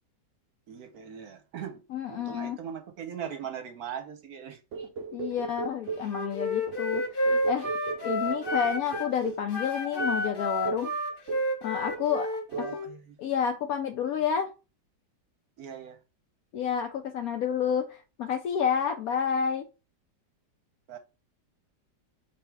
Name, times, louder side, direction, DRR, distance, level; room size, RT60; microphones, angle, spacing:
voice 1, 0.7-4.9 12.5-13.2 15.6-16.0 20.9-21.0, right 8 dB, 65° right, 1.1 m, -40 dB
voice 2, 1.9-2.6 5.1-7.7 8.0-10.9 11.6-12.4 13.2-14.5 16.5-19.7, left 8 dB, 70° left, 0.9 m, -29 dB
sound 1, 4.7-6.1 6.7-9.5 10.0-10.2 10.6-10.9 11.3-11.6 11.9-12.2 12.5-12.8, right 5 dB, 80° right, 0.6 m, -37 dB
Wind instrument woodwind instrument, 6.0-9.1 9.5-12.9, equal, 35° left, 1.0 m, -30 dB
3.4 x 3.2 x 4.6 m
omnidirectional pair, 1.9 m